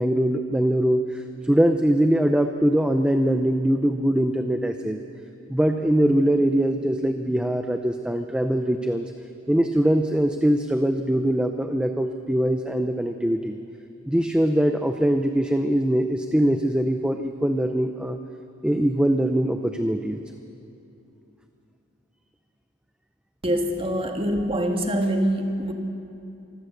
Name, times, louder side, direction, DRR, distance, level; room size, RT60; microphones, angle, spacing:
voice 1, 0.0-5.0 5.5-9.1 9.5-13.6 14.1-18.2 18.6-20.2, right 1 dB, 5° right, 6 dB, 0.6 m, -22 dB
voice 2, 23.4-25.7, equal, 25° right, 3 dB, 1.7 m, -24 dB
25.0 x 16.5 x 6.7 m, 2.8 s
head